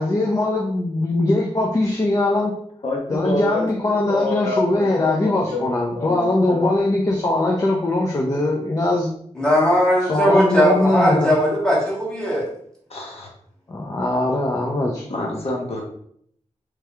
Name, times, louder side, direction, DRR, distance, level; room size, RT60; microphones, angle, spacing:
voice 1, 0.0-2.5 3.1-9.1 10.0-11.3 13.7-15.4, left 2 dB, 30° left, -2 dB, 0.5 m, -21 dB
voice 2, 2.8-3.7 4.1-6.7 12.9-13.3 15.1-15.8, left 2 dB, 55° left, -2 dB, 1.0 m, -27 dB
voice 3, 9.3-12.5, equal, 5° left, -6 dB, 1.6 m, -18 dB
3.3 x 3.1 x 3.5 m, 0.66 s
wide cardioid pair, 145°, 12 cm